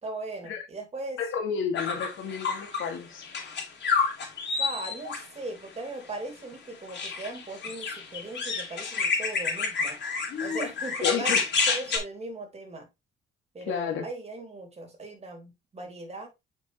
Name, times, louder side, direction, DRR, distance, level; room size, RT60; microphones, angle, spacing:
voice 1, 0.0-1.2 4.5-10.0 10.4-12.9 13.5-16.3, right 2 dB, 30° right, 3.4 m, -38 dB
voice 2, 1.2-3.2 11.0-11.4 13.7-14.1, left 7 dB, 85° left, 2.5 m, -31 dB
sound 1, 1.8-2.9 3.2-5.2 6.9-12.0, left 5 dB, 65° left, 4.0 m, -29 dB
6.8 x 6.0 x 3.2 m
cardioid pair, 90°, 20 cm